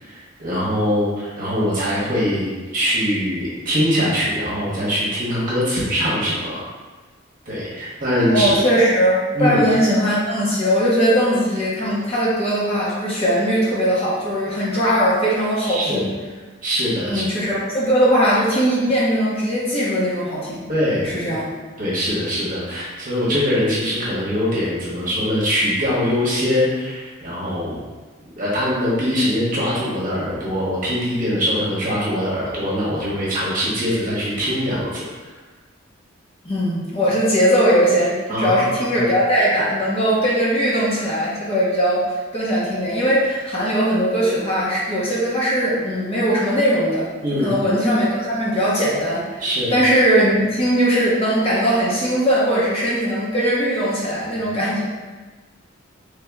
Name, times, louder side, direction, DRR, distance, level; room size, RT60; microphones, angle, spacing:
voice 1, 0.0-6.6 7.5-8.6 9.3-9.6 15.6-16.0 16.6-17.3 20.7-21.4 21.8-27.8 28.4-35.0 38.3-38.9 47.2-47.5 49.4-49.7, equal, 40° right, -7 dB, 1.0 m, -22 dB
voice 2, 8.3-16.1 17.1-20.6 21.0-21.5 36.4-42.1 42.3-47.1 47.4-49.4 49.7-54.8, equal, 30° left, -8 dB, 0.8 m, -19 dB
3.2 x 2.8 x 3.5 m, 1.3 s
head